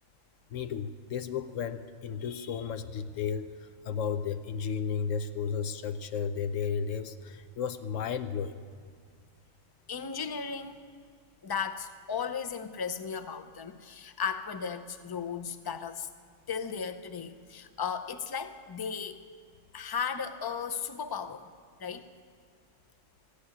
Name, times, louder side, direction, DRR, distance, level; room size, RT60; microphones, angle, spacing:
voice 1, 0.5-3.5 3.8-8.6, left 7 dB, 80° left, 10 dB, 1.0 m, -33 dB
voice 2, 9.9-10.9 11.4-16.1 16.5-19.2 19.7-21.5 21.8-22.1, left 6 dB, 35° left, 9 dB, 0.3 m, -35 dB
14.0 x 8.5 x 9.7 m, 2.1 s
omnidirectional pair, 1.3 m